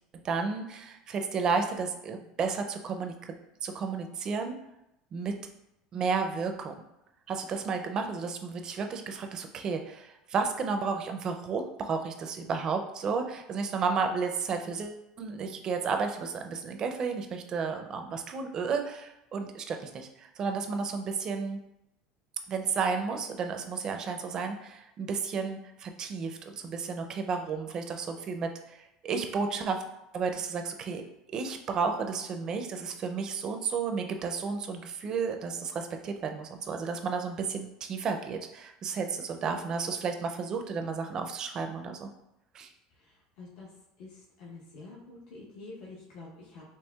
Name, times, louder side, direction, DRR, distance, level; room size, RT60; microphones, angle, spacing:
voice 1, 0.2-3.4 3.6-4.6 5.1-5.3 5.9-6.7 7.3-21.6 22.5-29.8 30.1-31.0 31.3-42.1 42.5-42.7, right 5 dB, 35° right, 5 dB, 0.4 m, -32 dB
voice 2, 43.0-43.7 44.0-46.6, left 3 dB, 70° left, -6 dB, 0.8 m, -47 dB
4.4 x 2.8 x 2.3 m, 0.85 s
supercardioid pair, 135°, 2 cm